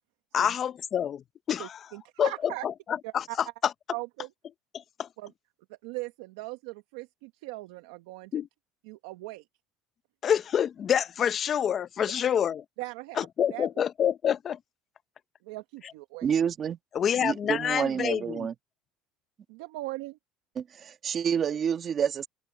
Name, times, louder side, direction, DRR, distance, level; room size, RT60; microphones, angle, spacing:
voice 1, 0.3-1.2 1.5-1.7 2.2-2.3 2.6-2.7 3.1-3.2 5.0-5.1 8.3-8.5 10.2-12.6 13.2-14.6 16.9-18.5, left 9 dB, 40° left, 0.8 m, -27 dB
voice 2, 1.6-2.6 3.0-3.4 3.9-4.3 5.2-5.3 5.7-8.4 8.8-9.5 12.0-12.2 12.8-13.7 15.4-16.3 19.5-20.2, right 21 dB, 85° right, 1.3 m, -39 dB
voice 3, 16.2-16.8 17.2-18.5 20.6-22.3, right 8 dB, 35° right, 1.4 m, -28 dB
supercardioid pair, 120°, 0 cm